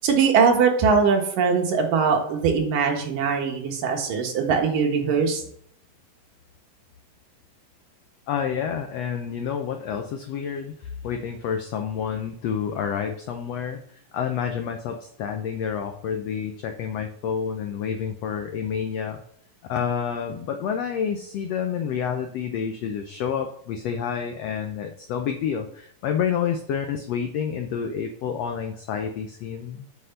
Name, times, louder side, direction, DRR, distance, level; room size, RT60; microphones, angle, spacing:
voice 1, 0.0-5.4, right 5 dB, 75° right, 2 dB, 3.1 m, -21 dB
voice 2, 8.3-13.8 14.1-19.2 19.7-29.9, left 7 dB, 85° left, 6 dB, 1.4 m, -29 dB
8.3 x 5.7 x 6.5 m, 0.64 s
omnidirectional pair, 3.9 m